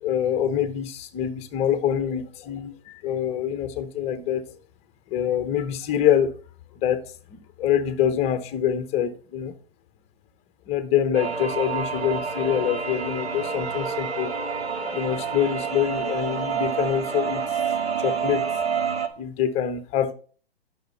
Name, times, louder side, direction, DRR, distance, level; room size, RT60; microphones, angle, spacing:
voice 1, 0.0-4.4 5.1-6.3 6.8-7.0 7.3-9.5 10.7-14.3 14.9-17.5 18.0-18.5 19.2-20.1, left 9 dB, 20° left, 0.9 m, -25 dB
sound 1, 11.1-19.1, right 6 dB, 90° right, 2.0 m, -28 dB
9.2 x 6.3 x 5.4 m
hypercardioid pair, 135°, 31 cm